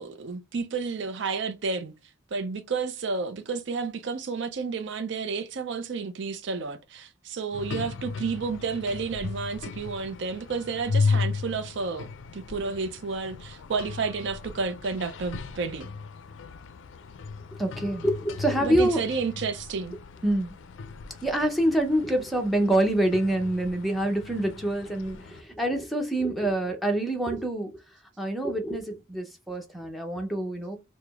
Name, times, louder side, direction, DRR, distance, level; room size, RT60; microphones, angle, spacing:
voice 1, 0.0-1.9 2.3-15.9 18.6-20.0, right 4 dB, 60° right, 0.5 m, -31 dB
sound 1, 7.5-25.4, left 4 dB, 65° left, 0.4 m, -35 dB
voice 2, 17.6-19.0 20.2-20.6 21.2-27.7 28.2-30.8, right 1 dB, ahead, 0.6 m, -26 dB
4.9 x 2.0 x 3.4 m
head